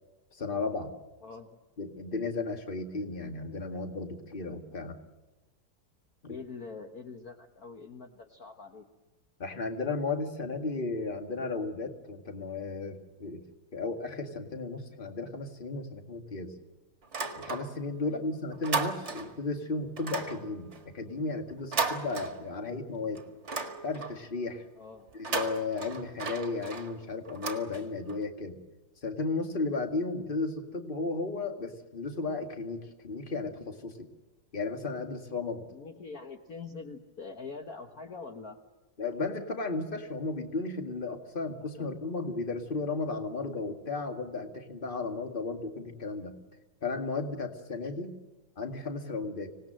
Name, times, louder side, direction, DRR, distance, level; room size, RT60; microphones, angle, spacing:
voice 1, 0.3-0.9 1.8-5.0 6.2-6.4 9.4-13.4 13.7-16.5 17.4-23.2 23.8-24.6 25.1-28.6 29.0-34.1 34.5-35.6 39.0-46.4 46.8-48.1 48.6-49.5, left 3 dB, 25° left, 5 dB, 2.0 m, -34 dB
voice 2, 6.3-8.8 18.0-18.3 24.8-25.1 35.7-38.6 41.8-42.1, left 4 dB, 50° left, 4 dB, 1.7 m, -44 dB
sound 1, 17.0-18.0 18.3-19.5 20.0-22.8 23.2-24.3 25.1-28.2, right 4 dB, 35° right, 2.0 m, -36 dB
25.5 x 19.0 x 7.7 m, 1.2 s
omnidirectional pair, 2.1 m